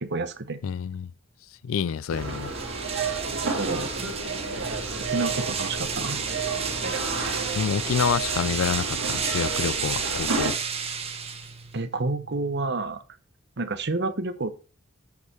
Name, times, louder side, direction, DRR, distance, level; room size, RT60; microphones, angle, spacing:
voice 1, 0.0-0.6 3.6-3.9 5.1-6.2 11.7-13.0 13.6-14.6, right 3 dB, 55° right, 1.0 m, -29 dB
voice 2, 0.6-1.1 1.6-2.5 7.6-10.6, left 7 dB, 90° left, 0.4 m, -27 dB
sound 1, 2.1-11.8, right 6 dB, 30° right, 1.3 m, -32 dB
sound 2, 2.1-10.5, right 4 dB, 80° right, 2.5 m, -31 dB
sound 3, 4.5-12.9, right 2 dB, ahead, 2.5 m, -47 dB
8.4 x 6.5 x 4.5 m
head